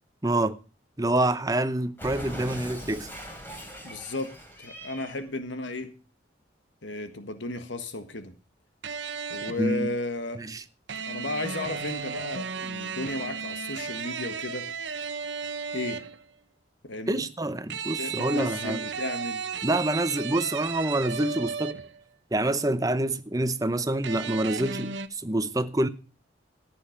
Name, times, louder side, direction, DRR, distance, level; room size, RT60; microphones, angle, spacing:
voice 1, 0.2-0.6 1.0-3.1 9.6-9.9 10.3-10.6 17.1-18.8 19.6-21.8 22.3-25.9, right 1 dB, 20° right, 0.8 m, -27 dB
Cat, 2.0-5.3, equal, 10° left, 3.6 m, -41 dB
voice 2, 3.8-4.3 4.6-5.9 6.8-8.3 9.3-10.4 11.1-14.7 15.7-16.0 16.9-17.3 18.0-19.4, left 2 dB, 90° left, 1.6 m, -34 dB
sound 1, 8.8-9.7 10.9-16.2 17.7-22.0 24.0-25.1, right 6 dB, 80° right, 1.0 m, -34 dB
14.5 x 9.4 x 5.2 m
head